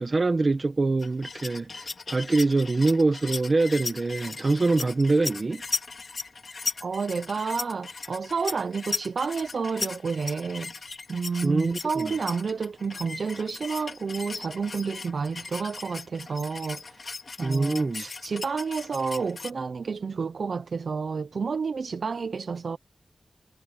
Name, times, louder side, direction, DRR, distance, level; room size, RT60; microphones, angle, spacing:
voice 1, 0.0-5.6 11.4-12.1 17.4-18.0, right 3 dB, 40° right, 1.0 m, -24 dB
sound 1, 1.0-19.5, left 4 dB, 55° left, 3.9 m, -37 dB
voice 2, 6.8-17.1 17.4-22.8, right 5 dB, 70° right, 0.6 m, -30 dB
wide cardioid pair, 125°, 0 cm